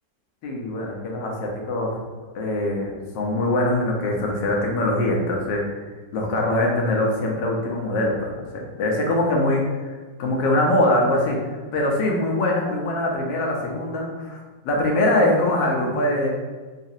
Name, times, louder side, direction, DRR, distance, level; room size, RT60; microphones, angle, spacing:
voice 1, 0.4-2.0 2.3-5.6 6.1-16.3, left 1 dB, 85° left, -1 dB, 1.4 m, -23 dB
4.0 x 2.4 x 2.7 m, 1.4 s
omnidirectional pair, 1.9 m